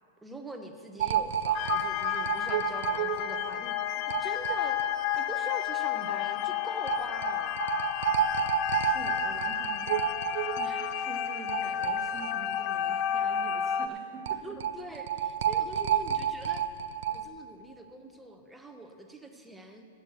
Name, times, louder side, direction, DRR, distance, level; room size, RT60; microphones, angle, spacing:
voice 1, 0.2-4.8 5.2-7.6 14.4-16.6 17.1-19.9, right 2 dB, 5° right, 4 dB, 0.8 m, -43 dB
sound 1, 1.0-5.3 5.5-5.6 5.9-6.0 6.9-12.6 12.9-13.0 14.3-17.2, right 9 dB, 70° right, 0.4 m, -30 dB
sound 2, 1.5-13.9, left 10 dB, 35° left, 0.3 m, -31 dB
voice 2, 8.8-14.4, right 3 dB, 20° right, 0 dB, 1.2 m, -46 dB
8.5 x 7.9 x 7.8 m, 2.4 s
hypercardioid pair, 150°, 0 cm